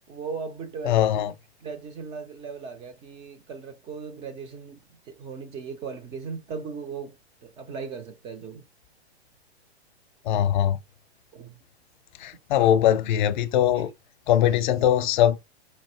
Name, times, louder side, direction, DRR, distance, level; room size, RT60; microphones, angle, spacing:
voice 1, 0.1-1.3 1.6-4.8 5.1-7.1 7.4-8.6 11.3-11.5 12.6-12.7 13.8-13.9, right 5 dB, 20° right, 0.4 m, -37 dB
voice 2, 0.8-1.3 10.3-10.8 12.2-13.9 14.3-15.4, left 11 dB, 45° left, 0.6 m, -21 dB
5.1 x 2.6 x 3.0 m
figure-of-eight pair, 110°, 33 cm